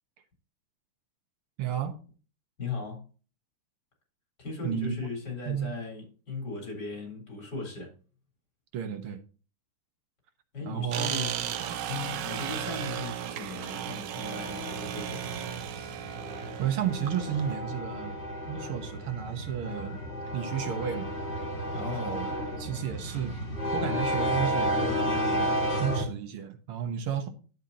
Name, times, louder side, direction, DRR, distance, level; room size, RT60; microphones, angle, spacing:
voice 1, 1.6-2.0 4.6-5.0 5.5-5.8 8.7-9.2 10.6-11.1 11.7-11.8 16.6-18.2 18.5-20.0 20.3-21.1 21.8-22.3 22.6-23.3 23.7-25.5 25.8-27.3, right 9 dB, 90° right, 2.1 m, -32 dB
voice 2, 2.6-3.1 4.4-7.9 10.5-11.3 11.9-15.5 21.7-22.2, left 4 dB, 50° left, 4.7 m, -37 dB
sound 1, 10.9-17.6, right 10 dB, 65° right, 1.2 m, -35 dB
sound 2, 14.2-26.0, equal, 30° left, 2.1 m, -32 dB
11.0 x 8.1 x 2.8 m
omnidirectional pair, 2.3 m